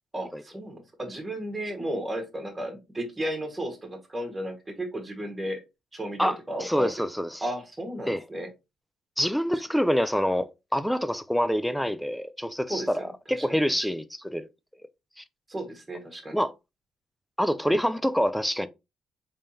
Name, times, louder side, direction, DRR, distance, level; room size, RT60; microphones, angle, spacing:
voice 1, 0.1-5.6 5.9-6.9 7.4-8.5 12.7-13.1 13.4-13.8 15.5-16.4, right 1 dB, 15° right, 1.3 m, -34 dB
voice 2, 6.2-7.4 8.1-8.2 9.2-14.5 15.2-15.3 16.3-16.5 17.4-18.7, equal, ahead, 0.4 m, -26 dB
3.6 x 3.3 x 2.7 m
cardioid pair, 90°, 0 cm